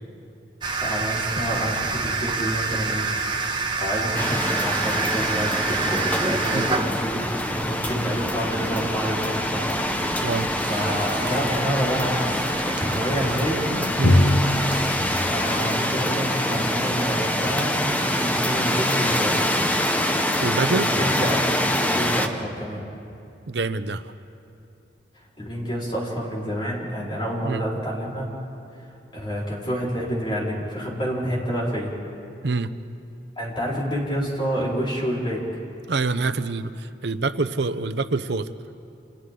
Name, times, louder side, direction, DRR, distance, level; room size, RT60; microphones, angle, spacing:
sound 1, 0.6-15.5, right 4 dB, 25° right, 1.3 m, -30 dB
voice 1, 0.8-3.1 3.8-9.6 10.0-10.1 10.7-12.3 12.6-13.7 15.1-19.4 20.8-21.5 21.8-22.8 25.4-28.3 29.1-31.9 33.4-35.6, equal, 25° left, -5 dB, 4.6 m, -28 dB
sound 2, 4.2-22.3, left 1 dB, 10° left, 0.9 m, -25 dB
voice 2, 9.9-10.5 14.0-14.2 16.5-16.6 20.4-20.9 23.5-24.0 27.4-27.7 32.4-32.7 35.9-38.5, right 3 dB, 70° right, 12 dB, 0.7 m, -26 dB
Drum, 14.0-17.6, left 1 dB, 75° left, 1.1 m, -23 dB
29.0 x 28.0 x 3.9 m, 2.6 s
head